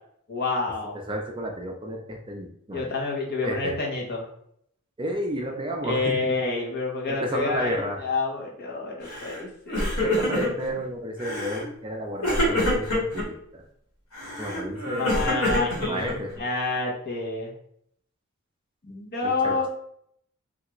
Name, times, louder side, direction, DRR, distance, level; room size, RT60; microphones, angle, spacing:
voice 1, 0.3-1.0 2.7-4.3 5.8-7.7 8.0-9.9 10.1-10.4 15.0-16.1 16.4-17.5 18.8-19.7, left 3 dB, 50° left, -2 dB, 0.8 m, -28 dB
voice 2, 1.1-2.9 3.4-3.8 5.0-6.3 7.1-8.0 10.0-13.6 14.4-15.4 15.8-16.3 19.2-19.7, equal, 25° right, 1 dB, 0.4 m, -32 dB
Crying sobbing, 9.1-9.4 9.7-10.7 11.2-11.7 12.2-13.2 14.1-16.4, left 1 dB, 85° left, 1.4 m, -26 dB
3.4 x 2.4 x 3.0 m, 0.70 s
head